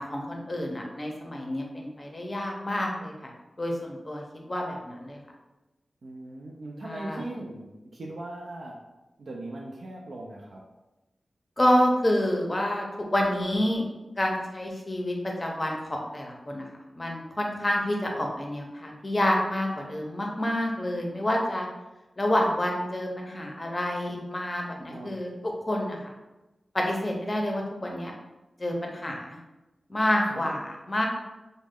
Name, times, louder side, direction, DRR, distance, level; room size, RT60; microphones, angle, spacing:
voice 1, 0.0-3.1 3.6-5.2 6.8-7.2 11.6-12.9 13.1-13.8 14.2-16.6 16.9-21.7 22.2-25.3 25.7-26.1 26.7-28.1 28.6-29.4 29.9-31.0, left 1 dB, 25° left, 0 dB, 0.5 m, -28 dB
voice 2, 6.0-8.8 9.2-10.6 24.9-25.1 30.3-30.5, right 2 dB, 75° right, -2 dB, 0.4 m, -39 dB
3.0 x 2.1 x 3.5 m, 1.0 s
wide cardioid pair, 110°, 0 cm